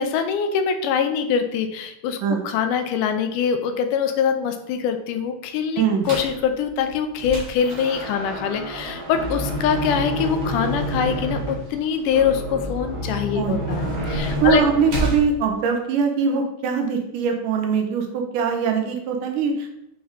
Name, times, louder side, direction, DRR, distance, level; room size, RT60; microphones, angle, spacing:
voice 1, 0.0-14.6, left 7 dB, 85° left, 7 dB, 2.3 m, -24 dB
sound 1, 6.0-6.4 6.9-15.2, right 1 dB, 40° right, 1.6 m, -28 dB
voice 2, 13.4-13.9 14.4-19.7, right 6 dB, 90° right, 3 dB, 2.5 m, -22 dB
7.4 x 4.3 x 3.7 m, 0.82 s
omnidirectional pair, 3.6 m